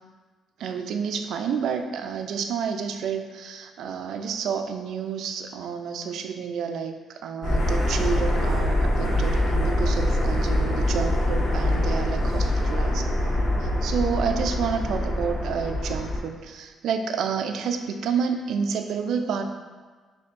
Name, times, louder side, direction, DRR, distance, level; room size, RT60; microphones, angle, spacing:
voice 1, 0.6-13.1 13.8-19.4, right 6 dB, 75° right, 6 dB, 0.3 m, -29 dB
sound 1, 7.4-16.2, left 1 dB, 65° left, 1.3 m, -24 dB
6.7 x 2.7 x 2.5 m, 1.4 s
cardioid pair, 90°, 0 cm